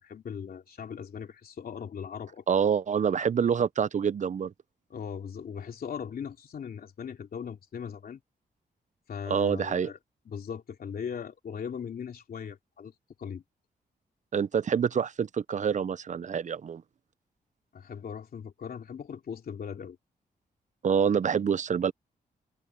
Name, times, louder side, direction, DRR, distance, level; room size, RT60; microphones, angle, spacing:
voice 1, 0.0-2.4 4.9-8.2 9.1-10.0 10.3-12.9 13.2-13.4 17.7-20.0, left 7 dB, 65° left, 2.9 m, -39 dB
voice 2, 2.5-4.5 9.3-9.9 14.3-16.8 20.8-21.9, right 7 dB, 50° right, 0.6 m, -26 dB
open air
cardioid pair, 85°, 16 cm